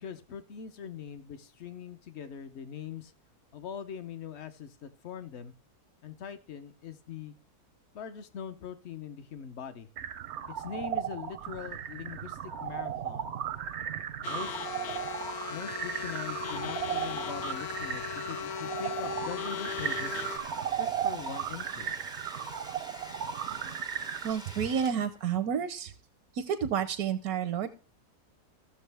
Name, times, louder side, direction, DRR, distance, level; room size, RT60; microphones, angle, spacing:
voice 1, 0.0-3.1 3.5-5.5 6.0-7.3 7.9-9.9 10.6-13.3 14.2-15.1 15.5-20.2 20.8-21.9, left 8 dB, 60° left, 12 dB, 0.8 m, -42 dB
sound 1, 10.0-24.3, right 9 dB, 65° right, 0.7 m, -36 dB
sound 2, 14.2-20.4, left 8 dB, 85° left, 1.4 m, -37 dB
Domestic sounds home sounds, 19.2-25.3, equal, 5° right, 0.4 m, -47 dB
voice 2, 24.2-25.9 26.5-27.7, right 8 dB, 80° right, 10 dB, 1.1 m, -30 dB
14.0 x 6.8 x 3.3 m, 0.37 s
omnidirectional pair, 1.6 m